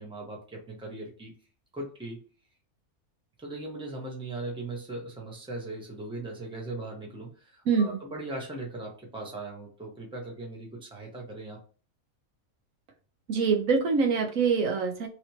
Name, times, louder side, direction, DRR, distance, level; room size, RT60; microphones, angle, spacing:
voice 1, 0.0-1.3 1.7-2.2 3.4-11.6, right 2 dB, 5° right, -1 dB, 0.9 m, -39 dB
voice 2, 7.7-8.0 13.3-15.1, right 5 dB, 70° right, 3 dB, 1.1 m, -24 dB
3.1 x 3.0 x 2.8 m, 0.37 s
omnidirectional pair, 1.5 m